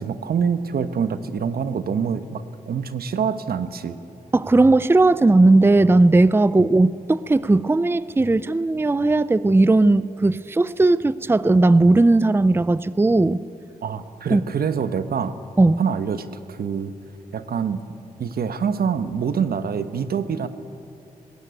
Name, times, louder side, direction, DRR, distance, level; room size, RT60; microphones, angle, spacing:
voice 1, 0.0-4.0 13.8-15.4 15.8-16.9 17.3-17.8 18.2-20.5, right 6 dB, 80° right, 11 dB, 1.1 m, -25 dB
voice 2, 4.3-13.4 14.3-14.4 15.6-15.8, right 2 dB, 15° right, 17 dB, 0.5 m, -17 dB
20.0 x 18.0 x 9.1 m, 2.7 s
cardioid pair, 75°, 16 cm